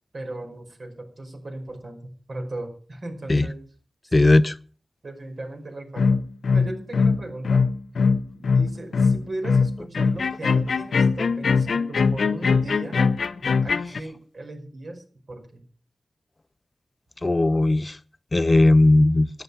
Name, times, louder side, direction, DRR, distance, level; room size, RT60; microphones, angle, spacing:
voice 1, 0.1-3.7 4.1-4.2 5.0-6.2 6.5-7.6 8.3-13.0 13.6-15.6, right 2 dB, 55° right, 4 dB, 5.1 m, -37 dB
voice 2, 4.1-4.5 17.2-18.0 18.3-19.3, left 2 dB, 30° left, 16 dB, 0.6 m, -17 dB
sound 1, 6.0-14.0, left 5 dB, 85° left, 0.7 m, -21 dB
13.5 x 10.5 x 6.8 m, 0.41 s
wide cardioid pair, 80°, 0 cm